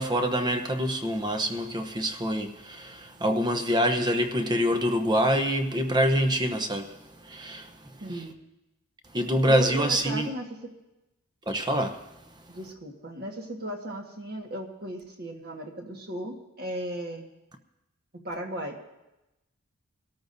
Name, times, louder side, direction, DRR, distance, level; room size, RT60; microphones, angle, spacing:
voice 1, 0.0-8.2 9.1-10.3 11.5-12.0, equal, 20° right, 0.8 m, -26 dB
voice 2, 8.0-8.3 9.5-10.5 12.5-17.3 18.2-18.8, right 1 dB, 45° right, 1.5 m, -36 dB
24.0 x 13.0 x 2.7 m
head